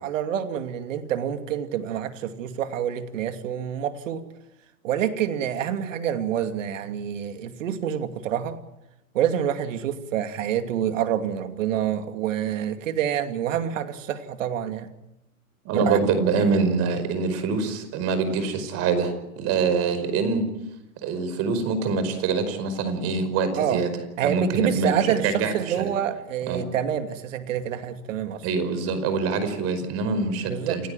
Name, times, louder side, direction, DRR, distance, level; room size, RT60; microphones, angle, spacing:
voice 1, 0.0-4.3 4.8-8.6 9.1-14.9 15.7-16.0 23.6-23.8 24.2-28.4 30.5-30.8, right 9 dB, 60° right, 8 dB, 2.7 m, -27 dB
voice 2, 15.6-20.4 21.0-23.9 24.2-25.9 26.5-26.7 28.4-30.9, right 4 dB, 35° right, 10 dB, 5.1 m, -25 dB
29.0 x 16.5 x 9.2 m, 0.90 s
hypercardioid pair, 130°, 43 cm